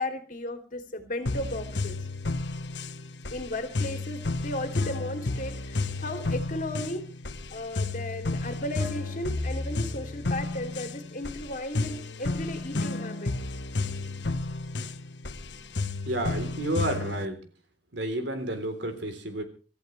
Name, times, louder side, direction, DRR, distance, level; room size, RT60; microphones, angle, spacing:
voice 1, 0.0-2.1 3.3-7.1 7.5-13.3, left 1 dB, 50° left, 6 dB, 3.0 m, -35 dB
sound 1, 1.3-17.3, left 3 dB, 75° left, 1.2 m, -32 dB
voice 2, 15.5-17.4 17.9-19.4, right 1 dB, 80° right, 7 dB, 3.6 m, -31 dB
26.0 x 14.0 x 3.3 m, 0.39 s
head